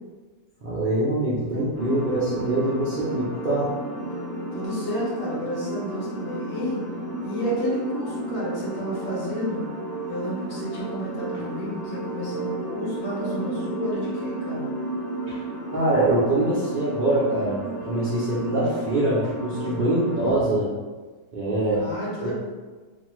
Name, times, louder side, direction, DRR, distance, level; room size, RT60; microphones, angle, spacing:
voice 1, 0.6-3.7 15.3-15.4 15.7-17.6 17.8-20.7 21.3-21.9 22.2-22.3, right 1 dB, 80° right, -10 dB, 0.4 m, -24 dB
sound 1, 1.7-20.3, right 2 dB, 20° right, 0.7 m, -33 dB
voice 2, 4.5-6.8 7.2-9.6 10.1-14.7 19.6-20.2 21.7-22.3, equal, 50° left, -7 dB, 1.2 m, -31 dB
2.5 x 2.5 x 3.0 m, 1.3 s
omnidirectional pair, 1.7 m